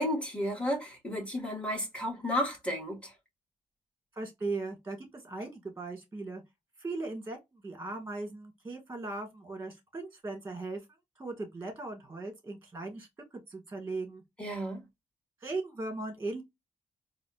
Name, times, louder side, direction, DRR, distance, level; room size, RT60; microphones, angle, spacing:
voice 1, 0.0-3.1 14.4-14.8, equal, 10° left, 1.9 m, -32 dB
voice 2, 4.1-6.4 6.8-10.8 11.2-13.1 13.3-14.2 15.4-16.4, right 3 dB, 20° right, 1.7 m, -38 dB
4.1 x 2.5 x 2.3 m
cardioid pair, 60°, 13 cm